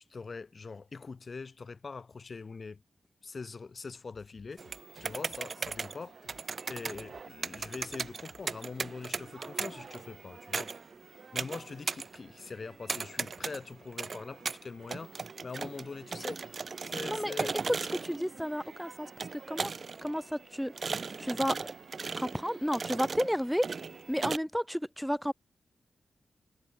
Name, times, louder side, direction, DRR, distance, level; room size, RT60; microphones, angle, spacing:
voice 1, 0.1-2.8 3.2-4.6 5.0-6.4 6.7-10.7 11.3-16.4 16.8-17.6, left 4 dB, 40° left, 1.2 m, -43 dB
sound 1, 4.1-9.1, left 8 dB, 85° left, 3.2 m, -61 dB
sound 2, 4.6-24.4, right 4 dB, 45° right, 1.5 m, -38 dB
voice 2, 17.1-17.5 18.0-19.7 20.0-20.7 21.2-21.6 22.2-23.7 24.1-25.3, equal, ahead, 0.8 m, -32 dB
wide cardioid pair, 115°, 0 cm